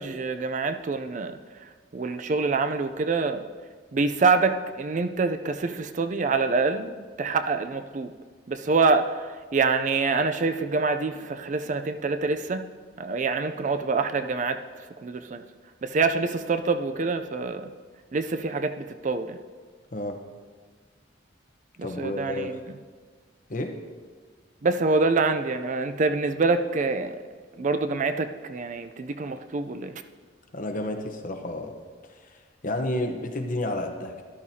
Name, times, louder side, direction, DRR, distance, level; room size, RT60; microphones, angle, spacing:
voice 1, 0.0-1.4 1.9-3.5 3.9-8.1 8.5-12.7 13.0-14.6 15.0-15.4 15.8-17.7 18.1-19.4 21.8-22.6 24.6-27.2 27.6-29.9, right 4 dB, 40° right, 9 dB, 0.4 m, -26 dB
voice 2, 21.8-22.6 23.5-23.8 30.5-31.8 32.0-34.2, left 1 dB, 45° left, 4 dB, 0.9 m, -31 dB
13.0 x 11.5 x 2.8 m, 1.5 s
head